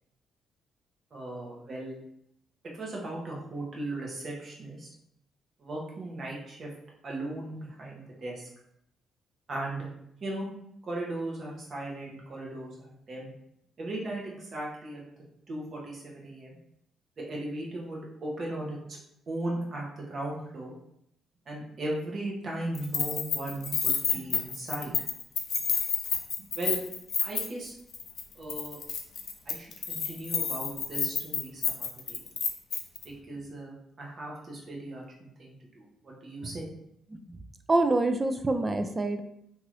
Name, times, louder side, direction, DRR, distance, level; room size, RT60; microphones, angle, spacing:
voice 1, 1.1-2.0 2.6-4.9 5.6-6.7 7.0-8.5 9.5-9.9 10.2-10.5 10.8-13.3 13.8-15.0 15.5-16.6 17.2-19.0 19.3-20.7 21.5-24.9 26.5-26.8 27.2-27.7 28.3-28.8 29.5-32.2 33.3-36.7, right 1 dB, 45° right, -2 dB, 0.9 m, -37 dB
Keys jangling, 22.7-27.7 27.9-28.2 28.5-33.0, left 6 dB, 60° left, 0.4 m, -30 dB
voice 2, 37.7-39.2, right 2 dB, 25° right, 8 dB, 0.3 m, -25 dB
2.9 x 2.5 x 3.1 m, 0.76 s
cardioid pair, 90°, 0 cm